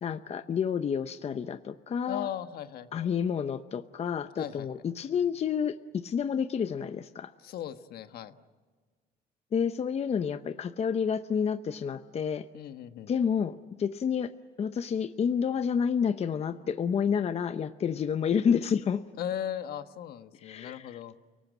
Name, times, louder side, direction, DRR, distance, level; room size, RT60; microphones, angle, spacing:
voice 1, 0.0-2.3 2.9-7.3 9.5-12.5 13.1-14.3 14.6-19.0 20.4-21.0, left 7 dB, 40° left, 10 dB, 0.8 m, -29 dB
voice 2, 2.1-3.1 4.4-4.7 7.4-8.3 12.5-13.1 19.2-21.1, left 10 dB, 65° left, 9 dB, 1.3 m, -37 dB
29.5 x 19.0 x 9.2 m, 1.5 s
cardioid pair, 110°, 17 cm